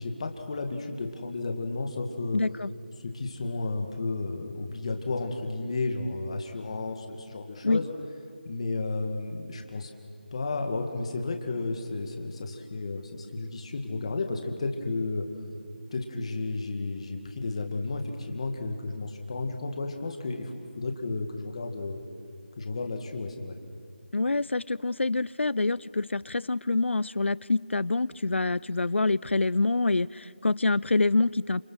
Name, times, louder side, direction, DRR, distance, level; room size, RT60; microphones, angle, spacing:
voice 1, 0.0-2.4 3.0-7.9 8.4-9.9 10.3-15.3 15.9-22.0 22.6-23.6, left 3 dB, 30° left, 4 dB, 2.2 m, -32 dB
voice 2, 2.3-2.7 7.6-7.8 24.1-31.6, left 3 dB, 90° left, 22 dB, 0.6 m, -26 dB
28.0 x 27.0 x 6.5 m, 2.3 s
figure-of-eight pair, 170°, 6 cm